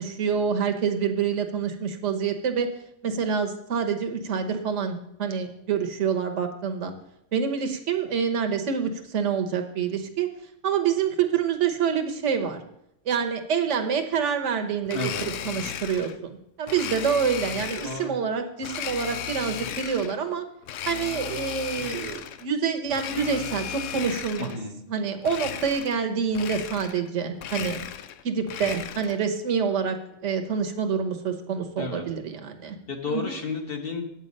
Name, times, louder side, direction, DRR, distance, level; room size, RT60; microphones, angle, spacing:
voice 1, 0.0-2.7 3.0-6.9 7.3-10.3 10.6-12.6 13.1-20.4 20.9-24.5 24.9-27.8 28.2-30.0 30.2-32.8 33.1-33.3, right 6 dB, 75° right, 5 dB, 1.3 m, -27 dB
Domestic sounds home sounds, 14.9-16.2 16.7-18.1 18.6-20.2 20.6-22.5 22.9-24.6 25.2-26.1 26.3-27.1 27.4-29.2, left 10 dB, 80° left, 0.9 m, -35 dB
voice 2, 14.9-15.3 17.8-18.1 24.4-24.8 31.8-32.0 32.6-34.0, left 3 dB, 50° left, 3 dB, 1.6 m, -32 dB
9.1 x 8.1 x 5.3 m, 0.78 s
omnidirectional pair, 1.3 m